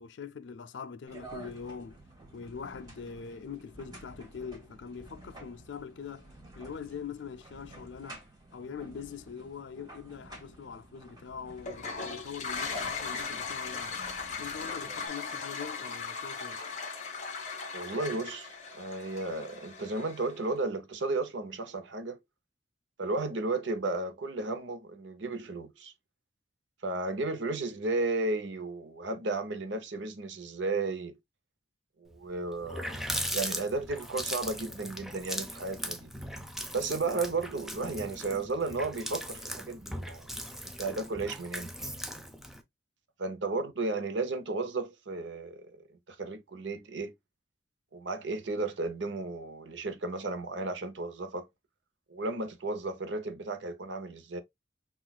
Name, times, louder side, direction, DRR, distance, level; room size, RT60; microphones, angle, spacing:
voice 1, 0.0-2.0 2.3-6.3 6.5-8.2 8.5-14.0 14.4-16.6, left 6 dB, 70° left, 0.4 m, -43 dB
sound 1, 1.1-15.1, right 2 dB, 20° right, 1.5 m, -51 dB
Toilet flush, 11.6-20.5, left 5 dB, 40° left, 1.0 m, -38 dB
voice 2, 17.7-22.2 23.0-25.9 26.8-31.2 32.0-36.1 36.7-40.3 40.6-41.7 43.2-47.1 47.9-51.5 52.1-54.4, right 3 dB, 70° right, 0.7 m, -34 dB
Water tap faucet, 32.2-32.3 32.5-42.6, equal, ahead, 0.4 m, -38 dB
5.9 x 2.4 x 2.3 m
head